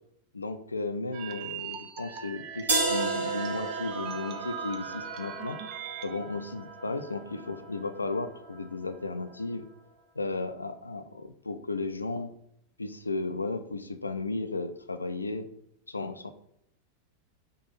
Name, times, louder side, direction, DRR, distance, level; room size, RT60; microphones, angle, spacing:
voice 1, 0.3-5.6 6.0-9.6 10.2-12.3 12.8-15.5 15.9-16.3, left 3 dB, 80° left, 10 dB, 0.3 m, -34 dB
sound 1, 1.1-6.2, right 8 dB, 40° right, 0.4 m, -41 dB
sound 2, 2.7-8.6, right 3 dB, 65° right, 1.1 m, -34 dB
3.8 x 2.7 x 3.9 m, 0.73 s
figure-of-eight pair, 90°, 0 cm